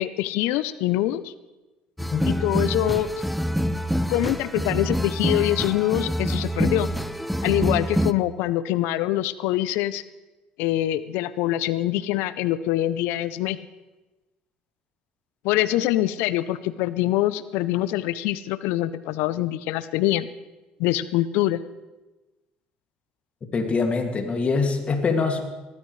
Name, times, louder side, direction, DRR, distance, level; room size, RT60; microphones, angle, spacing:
voice 1, 0.0-1.3 2.3-3.1 4.1-6.9 7.4-10.0 10.6-13.6 15.4-20.3 20.8-21.6, left 14 dB, 75° left, 15 dB, 0.6 m, -24 dB
sound 1, 2.0-8.1, equal, ahead, 0.7 m, -26 dB
voice 2, 23.5-25.4, left 4 dB, 35° left, 4 dB, 2.3 m, -24 dB
19.5 x 14.0 x 3.2 m, 1.1 s
supercardioid pair, 75°, 4 cm